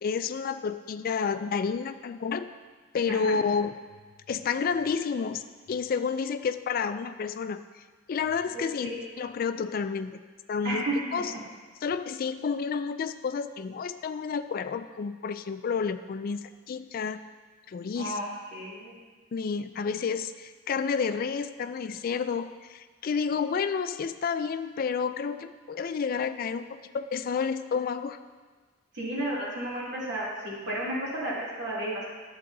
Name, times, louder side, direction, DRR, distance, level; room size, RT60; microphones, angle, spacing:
voice 1, 0.0-2.5 2.9-3.7 4.3-5.4 5.7-7.6 8.1-10.2 10.5-10.8 11.1-11.3 11.8-17.2 17.7-18.2 19.3-26.7 26.9-28.2, left 6 dB, 45° left, 10 dB, 0.3 m, -30 dB
voice 2, 8.5-9.0 10.6-10.9 18.0-19.0 28.9-32.1, right 1 dB, 60° right, -7 dB, 2.5 m, -33 dB
11.0 x 7.9 x 2.7 m, 1.5 s
head